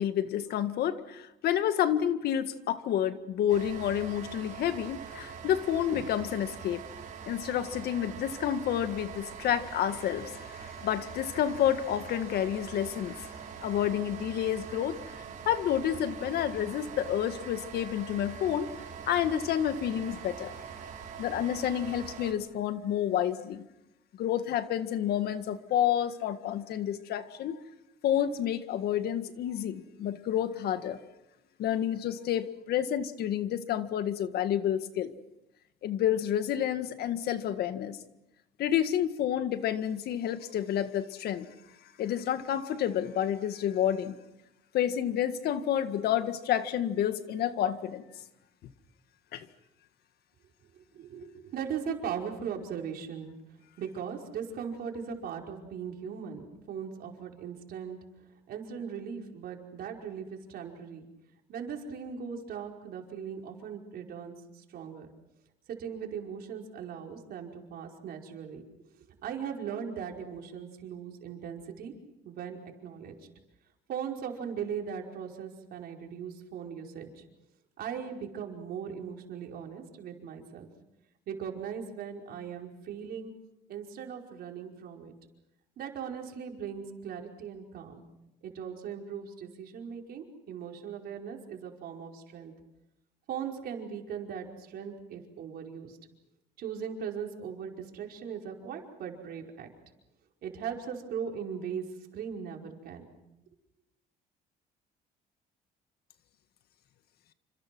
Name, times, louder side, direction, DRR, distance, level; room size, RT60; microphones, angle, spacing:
voice 1, 0.0-6.8 7.3-13.3 13.6-15.0 15.5-18.7 19.1-20.5 21.2-23.6 24.2-27.6 28.0-31.0 31.6-35.1 35.8-38.0 38.6-41.5 42.0-44.2 44.7-48.0 49.3-49.5, left 10 dB, 70° left, 10 dB, 1.8 m, -29 dB
sound 1, 3.5-22.3, right 7 dB, 50° right, 5.6 m, -43 dB
voice 2, 50.7-53.3 53.8-58.0 58.5-61.1 61.5-65.1 65.7-68.6 68.9-71.9 72.2-73.1 73.9-77.2 77.8-80.7 81.3-83.3 83.7-85.1 85.8-88.0 88.4-92.5 93.3-96.0 96.6-99.7 100.4-101.9 102.1-103.1, right 7 dB, 65° right, 1 dB, 5.2 m, -39 dB
28.5 x 26.5 x 6.2 m, 0.93 s
cardioid pair, 110°, 17 cm